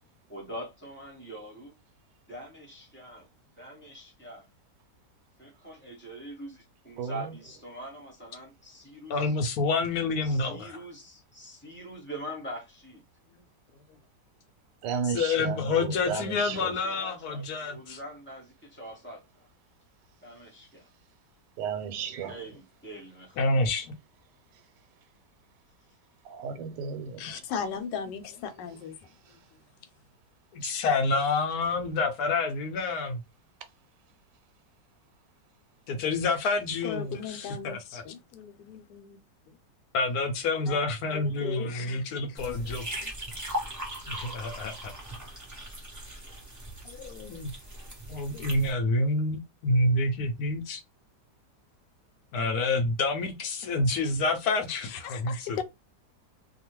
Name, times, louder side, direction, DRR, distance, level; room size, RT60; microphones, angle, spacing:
voice 1, 0.3-1.7 2.3-3.3 3.6-4.5 5.4-9.3 10.2-13.0 16.4-19.5 20.2-20.9 22.3-23.5, right 1 dB, 10° left, 0.8 m, -43 dB
voice 2, 7.0-7.3 14.8-16.7 21.6-22.4 26.2-27.4, right 6 dB, 85° right, 1.3 m, -34 dB
voice 3, 9.1-10.8 15.1-18.0 23.4-23.9 30.5-33.2 35.9-38.0 38.3-39.2 39.9-43.1 44.1-44.9 46.8-47.5 48.1-50.8 52.3-55.6, left 3 dB, 70° left, 1.0 m, -28 dB
voice 4, 27.2-29.0 36.8-38.2 40.7-40.8 41.1-42.8 54.8-55.6, left 7 dB, 85° left, 1.2 m, -37 dB
sound 1, 42.4-48.7, equal, 20° right, 0.5 m, -39 dB
2.8 x 2.3 x 2.9 m
omnidirectional pair, 1.8 m